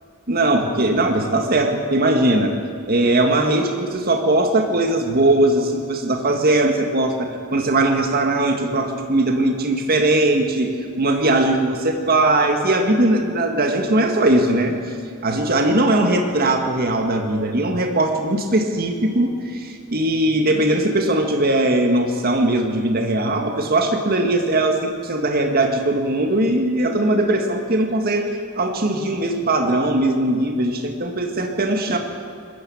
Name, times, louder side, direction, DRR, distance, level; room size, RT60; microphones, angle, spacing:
voice 1, 0.3-2.5 2.9-10.7 11.0-14.8 15.2-32.0, right 1 dB, 45° right, 4 dB, 2.0 m, -19 dB
21.5 x 13.5 x 8.7 m, 2.3 s
head